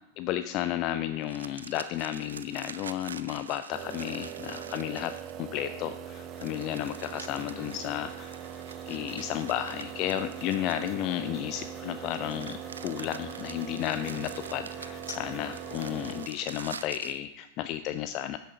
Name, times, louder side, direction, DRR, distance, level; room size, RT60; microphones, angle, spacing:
voice 1, 0.2-5.1 5.4-8.4 8.9-18.4, left 12 dB, 40° left, 11 dB, 0.4 m, -33 dB
sound 1, 1.2-5.5 6.4-11.3 12.0-17.2, right 6 dB, 70° right, 0.5 m, -46 dB
sound 2, 3.7-16.3, right 9 dB, 35° right, 0.7 m, -41 dB
sound 3, 6.0-16.7, left 1 dB, 5° left, 2.1 m, -55 dB
13.0 x 8.4 x 3.7 m, 0.96 s
figure-of-eight pair, 90°, 0 cm